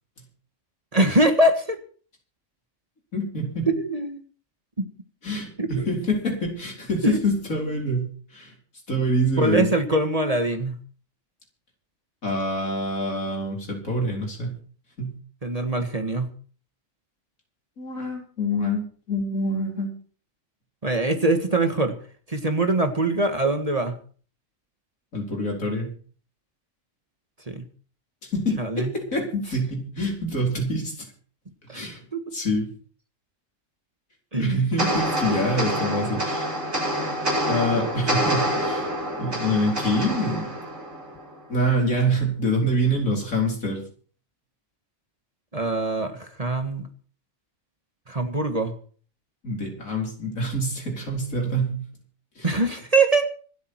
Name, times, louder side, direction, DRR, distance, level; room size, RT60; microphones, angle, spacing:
voice 1, 0.9-1.8 3.7-4.2 4.8-4.9 5.6-5.9 7.0-7.3 9.4-10.8 15.4-16.3 20.8-22.0 22.3-24.0 27.5-27.6 28.6-28.9 31.7-32.4 34.3-34.6 45.5-46.8 48.1-48.7 52.4-53.3, right 2 dB, 30° right, 7 dB, 1.6 m, -23 dB
voice 2, 3.1-3.7 5.2-8.5 8.9-9.7 12.2-14.5 15.0-15.1 17.8-19.9 25.1-25.9 28.2-31.1 31.7-32.0 32.3-32.7 34.4-36.5 37.5-38.9 39.2-40.6 41.5-43.8 49.4-51.8 52.4-52.6, equal, 85° left, 1 dB, 4.6 m, -26 dB
sound 1, 34.8-41.4, equal, 85° right, 7.3 m, -27 dB
25.5 x 8.6 x 4.6 m, 0.43 s
omnidirectional pair, 1.4 m